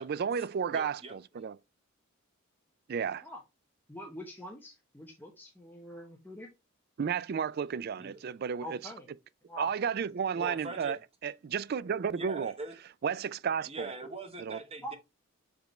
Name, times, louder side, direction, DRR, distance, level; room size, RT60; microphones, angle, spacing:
voice 1, 0.0-1.5 2.9-3.2 7.0-8.8 9.6-12.5 13.0-13.9 14.4-14.6, right 7 dB, 45° right, 0.3 m, -32 dB
voice 2, 0.7-1.1 8.0-8.2 10.4-11.0 12.1-12.8 13.6-15.0, right 3 dB, 30° right, 1.1 m, -42 dB
voice 3, 3.9-6.5 8.6-9.1 9.5-9.7 14.8-14.9, equal, 10° left, 0.8 m, -44 dB
6.1 x 5.1 x 3.1 m
head